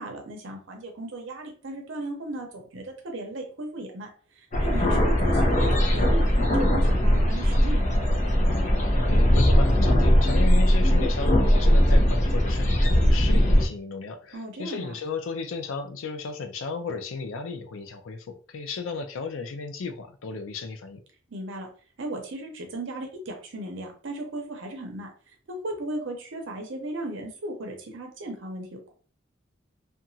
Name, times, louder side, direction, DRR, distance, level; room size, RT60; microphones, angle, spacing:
voice 1, 0.0-8.1 14.3-14.9 21.3-21.7 22.0-25.1 25.5-28.9, right 1 dB, 70° right, 0.7 m, -36 dB
sound 1, 4.5-13.6, equal, 40° left, 0.6 m, -20 dB
voice 2, 9.0-21.0, left 4 dB, 85° left, 0.4 m, -34 dB
2.8 x 2.4 x 2.7 m
head